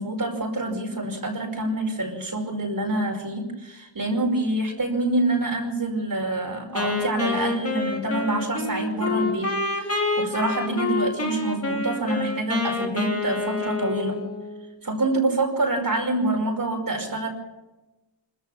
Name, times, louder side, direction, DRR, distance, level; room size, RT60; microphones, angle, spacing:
voice 1, 0.0-14.2 14.8-17.3, right 2 dB, 45° right, 1 dB, 5.3 m, -26 dB
Wind instrument woodwind instrument, 6.8-14.7, left 3 dB, 30° left, 3.3 m, -27 dB
25.5 x 14.5 x 7.1 m, 1.1 s
wide cardioid pair, 90°, 45 cm